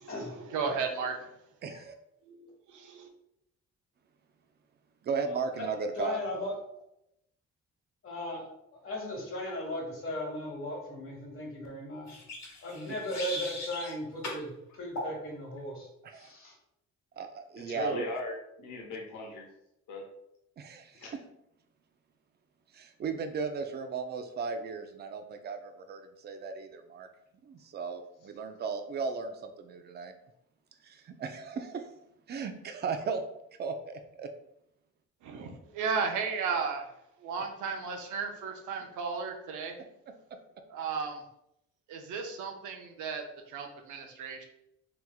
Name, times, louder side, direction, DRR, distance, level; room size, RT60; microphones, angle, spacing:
voice 1, 0.0-1.3 2.3-3.1 35.2-39.8 40.7-41.2 41.9-44.4, right 5 dB, 80° right, 3 dB, 0.6 m, -35 dB
voice 2, 1.6-1.9 5.0-6.2 16.0-16.3 17.2-18.0 20.6-21.0 22.7-27.1 27.5-30.1 30.8-31.9 32.3-33.2 33.6-34.3, right 5 dB, 35° right, 7 dB, 0.4 m, -36 dB
voice 3, 6.0-6.5 8.0-12.2 12.6-16.6, left 1 dB, 45° left, -1 dB, 1.3 m, -37 dB
sound 1, 12.1-13.9 14.2-14.4 14.9-15.1, left 1 dB, 65° left, 1.1 m, -38 dB
voice 4, 17.6-19.5 19.9-20.0 20.9-21.1, left 2 dB, 85° left, -1 dB, 0.8 m, -38 dB
3.4 x 2.9 x 2.3 m, 0.81 s
cardioid pair, 90°, 30 cm